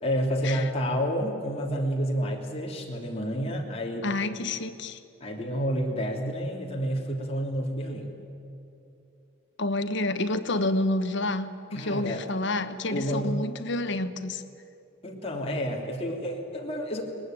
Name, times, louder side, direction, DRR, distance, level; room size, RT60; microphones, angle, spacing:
voice 1, 0.0-4.1 5.2-8.1 11.7-12.2 12.9-13.3 15.0-17.0, equal, 30° left, -1 dB, 3.2 m, -29 dB
voice 2, 4.0-5.0 9.6-14.4, left 2 dB, 65° left, 10 dB, 1.2 m, -29 dB
22.0 x 20.0 x 9.2 m, 2.9 s
head